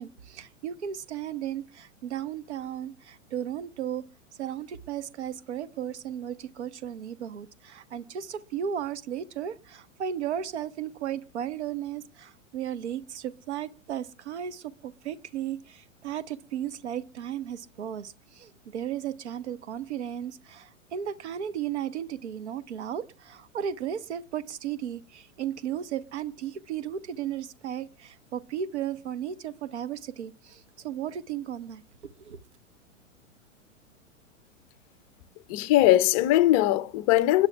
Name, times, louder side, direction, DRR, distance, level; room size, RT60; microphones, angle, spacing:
voice 1, 0.0-4.0 4.4-31.8 32.2-32.4, right 9 dB, 55° right, 1.1 m, -35 dB
voice 2, 35.5-37.5, left 15 dB, 25° left, 0.6 m, -20 dB
29.5 x 10.5 x 2.3 m
figure-of-eight pair, 105°, 40 cm